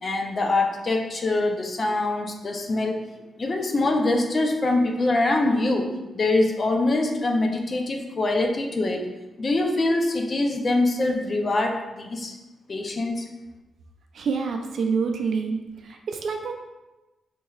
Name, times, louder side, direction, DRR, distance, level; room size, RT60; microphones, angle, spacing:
voice 1, 0.0-3.0 3.4-9.1 9.4-12.3 12.7-13.3, left 2 dB, 40° left, 3 dB, 0.5 m, -24 dB
voice 2, 14.1-16.5, right 5 dB, 65° right, 3 dB, 0.4 m, -27 dB
4.4 x 3.0 x 2.3 m, 1.1 s
cardioid pair, 110°, 0 cm